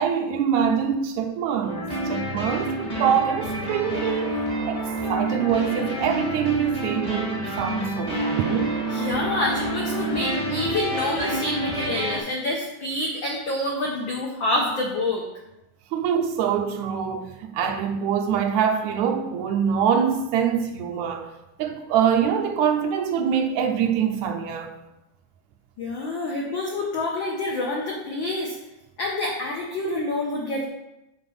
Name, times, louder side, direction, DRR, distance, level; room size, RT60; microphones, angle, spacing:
voice 1, 0.0-4.4 4.7-4.8 5.1-8.8 15.9-21.3 21.6-24.7, right 7 dB, 80° right, 1.9 m, -24 dB
sound 1, 1.7-12.2, right 1 dB, 25° left, 0.8 m, -28 dB
voice 2, 8.9-15.2 25.8-28.5 29.0-30.7, left 2 dB, 80° left, 1.0 m, -27 dB
7.9 x 4.3 x 5.4 m
omnidirectional pair, 3.4 m